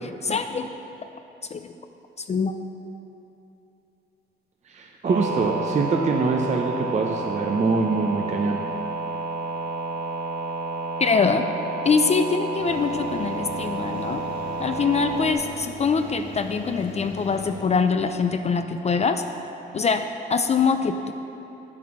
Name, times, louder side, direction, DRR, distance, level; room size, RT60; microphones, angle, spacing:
voice 1, 0.2-0.7 1.5-1.7 2.3-2.6 11.0-11.5 11.8-14.2 14.6-19.2 19.7-21.1, left 5 dB, 35° left, 7 dB, 0.5 m, -23 dB
voice 2, 4.7-8.6, right 4 dB, 35° right, 2 dB, 0.7 m, -24 dB
sound 1, 5.0-15.3, right 3 dB, 50° right, 1.4 m, -30 dB
sound 2, 12.6-17.6, left 2 dB, 60° left, 2.6 m, -40 dB
8.4 x 7.4 x 6.0 m, 2.9 s
cardioid pair, 90°, 20 cm